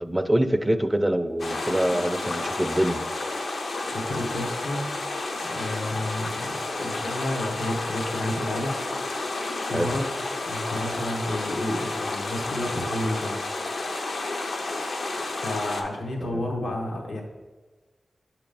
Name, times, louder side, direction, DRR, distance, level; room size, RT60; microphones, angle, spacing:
voice 1, 0.0-3.0 9.7-9.9 16.2-16.4, right 1 dB, 15° right, 9 dB, 0.4 m, -25 dB
sound 1, 1.4-15.8, left 2 dB, 70° left, 0.6 m, -31 dB
voice 2, 3.8-4.9 5.4-8.8 9.1-10.1 10.4-13.5 15.4-17.2, left 1 dB, 85° left, 0 dB, 1.0 m, -31 dB
6.6 x 3.0 x 5.2 m, 1.3 s
wide cardioid pair, 70°, 0 cm